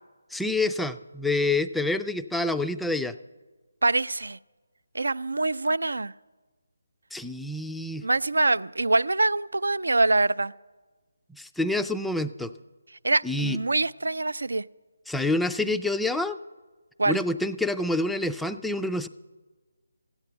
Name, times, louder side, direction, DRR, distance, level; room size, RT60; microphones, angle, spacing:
voice 1, 0.3-3.1 7.1-8.0 11.3-12.5 13.2-13.6 15.1-16.4 17.1-19.1, left 2 dB, ahead, 0.3 m, -27 dB
voice 2, 3.8-4.4 4.9-6.1 8.0-10.5 13.0-14.6 17.0-17.2, right 2 dB, 75° right, 0.4 m, -24 dB
14.0 x 8.9 x 7.9 m
figure-of-eight pair, 155°, 0 cm